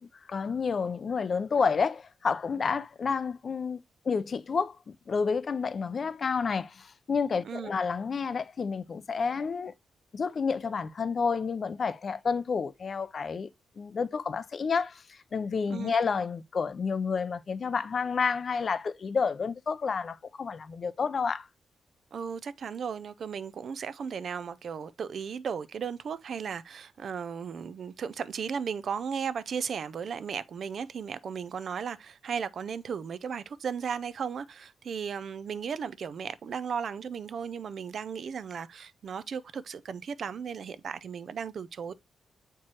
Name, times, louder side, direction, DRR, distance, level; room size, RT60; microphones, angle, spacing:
voice 1, 0.0-9.7 10.1-13.5 13.8-21.5, left 5 dB, 45° left, 0.5 m, -30 dB
voice 2, 22.1-41.9, right 6 dB, 60° right, 0.4 m, -35 dB
7.4 x 4.5 x 2.9 m
cardioid pair, 100°, 0 cm